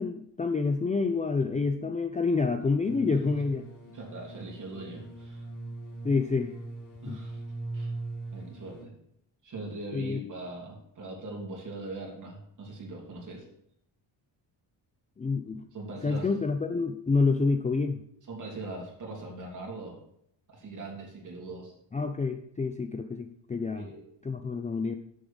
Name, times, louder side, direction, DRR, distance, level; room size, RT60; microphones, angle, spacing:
voice 1, 0.0-3.7 6.0-6.5 7.1-7.2 9.9-10.2 15.2-15.7 16.0-18.0 21.9-23.9 24.2-24.9, left 4 dB, 15° left, 6 dB, 0.4 m, -28 dB
sound 1, 2.9-8.8, right 2 dB, 45° left, 2.5 m, -41 dB
voice 2, 3.9-5.4 7.0-7.4 7.7-7.9 8.3-8.9 9.4-13.5 15.7-16.3 18.3-20.0 20.5-21.7 23.8-24.1, right 2 dB, 40° right, -1 dB, 3.0 m, -41 dB
7.1 x 6.5 x 7.0 m, 0.74 s
wide cardioid pair, 145°, 45 cm